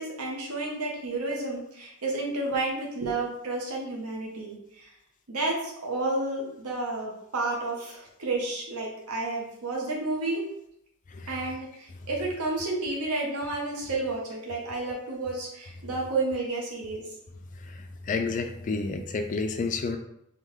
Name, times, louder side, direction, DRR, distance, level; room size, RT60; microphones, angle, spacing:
voice 1, 0.0-4.9 5.3-10.4 11.3-17.0, right 2 dB, 85° right, -2 dB, 0.9 m, -31 dB
voice 2, 18.1-20.0, left 4 dB, 35° left, 7 dB, 0.3 m, -29 dB
3.6 x 2.3 x 3.1 m, 0.76 s
head